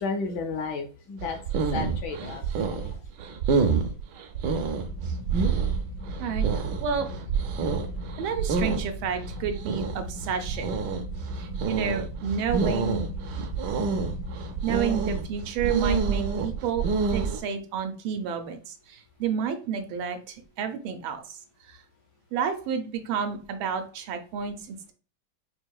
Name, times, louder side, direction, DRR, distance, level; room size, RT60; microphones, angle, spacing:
voice 1, 0.0-1.4 1.7-3.0 13.7-14.0, left 4 dB, 70° left, 4 dB, 1.1 m, -33 dB
sound 1, 1.2-17.4, right 5 dB, 70° right, 1.1 m, -28 dB
sound 2, 4.8-15.0, left 2 dB, 90° left, 2.9 m, -39 dB
voice 2, 8.2-10.7 11.4-13.1 14.6-16.8 17.1-21.4 21.7-21.8 22.3-24.9, right 7 dB, 90° right, 7 dB, 1.5 m, -30 dB
5.5 x 2.7 x 2.3 m, 0.37 s
omnidirectional pair, 2.1 m